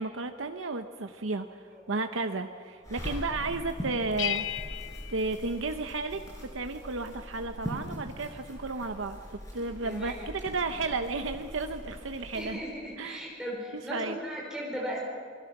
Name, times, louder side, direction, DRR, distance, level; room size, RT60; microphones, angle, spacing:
voice 1, 0.0-1.6 1.9-4.8 5.1-12.7 13.0-13.2 13.7-14.2, right 3 dB, 85° right, 6 dB, 0.9 m, -33 dB
sound 1, 2.8-12.5, equal, 15° left, 5.6 m, -42 dB
sound 2, 4.2-6.4, left 12 dB, 90° left, 0.8 m, -36 dB
voice 2, 9.8-10.3 12.3-15.0, equal, 5° right, -3 dB, 5.2 m, -37 dB
28.0 x 20.5 x 6.0 m, 2.1 s
head